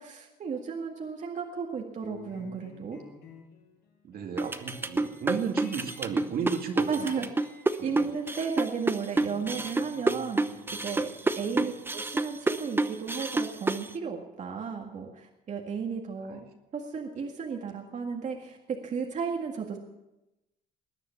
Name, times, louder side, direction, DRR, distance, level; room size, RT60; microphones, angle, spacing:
voice 1, 0.0-3.0 6.9-7.3 7.8-11.1 11.4-16.4 16.7-19.8, right 5 dB, 45° right, 1 dB, 1.9 m, -34 dB
sound 1, 2.0-13.1, left 5 dB, 75° left, 6.0 m, -54 dB
voice 2, 4.0-7.3 7.8-8.1 11.4-11.6, right 6 dB, 60° right, 3 dB, 2.3 m, -34 dB
sound 2, 4.4-13.9, right 2 dB, 15° right, 0.9 m, -28 dB
19.5 x 9.8 x 7.2 m, 0.97 s
cardioid pair, 110°, 17 cm